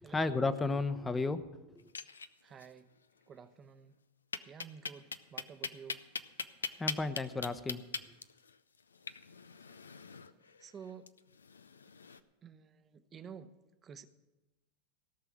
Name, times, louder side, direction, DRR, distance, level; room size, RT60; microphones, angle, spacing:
voice 1, 0.1-1.4 6.8-7.8, left 3 dB, 15° left, 12 dB, 0.8 m, -32 dB
sound 1, 1.8-2.7 3.0-3.1 3.4-3.5 4.3-12.2, left 5 dB, 90° left, 0.5 m, -41 dB
voice 2, 2.4-2.9 3.3-4.0 4.5-6.0 10.6-11.1 12.4-13.5 13.8-14.0, right 7 dB, 30° right, 11 dB, 0.9 m, -51 dB
17.0 x 6.0 x 7.2 m, 1.0 s
hypercardioid pair, 95°, 0 cm